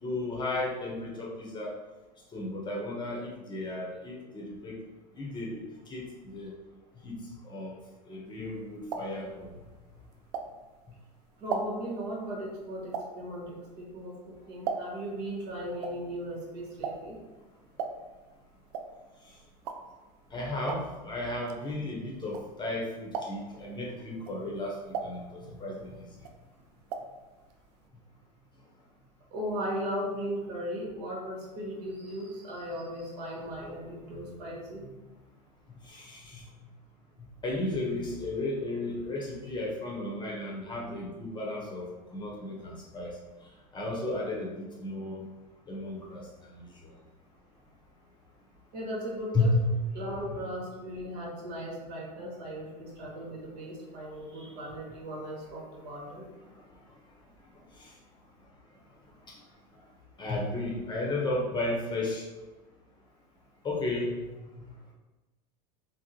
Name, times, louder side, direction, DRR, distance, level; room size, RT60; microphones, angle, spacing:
voice 1, 0.0-1.8 2.3-4.8 5.1-5.6 5.9-6.5 7.0-7.1 7.4-7.8 8.0-9.5 20.3-24.7 25.0-26.1 35.8-36.4 37.4-41.9 42.1-43.2 43.7-45.2 45.7-46.9 49.3-49.6 57.5-57.9 59.3-59.4 60.2-62.2 63.6-64.1, left 2 dB, 20° left, -3 dB, 0.9 m, -34 dB
sound 1, 8.4-10.9 11.3-15.2 15.5-22.8 23.1-23.6 24.1-25.8 26.1-27.2 27.5-27.6 27.8-27.9, right 5 dB, 65° right, 0.4 m, -38 dB
voice 2, 11.4-17.2 25.4-25.6 29.3-35.1 40.5-40.6 48.7-49.5 49.9-56.3, equal, 50° right, -3 dB, 1.2 m, -37 dB
3.5 x 2.1 x 2.8 m, 1.2 s
hypercardioid pair, 95°, 21 cm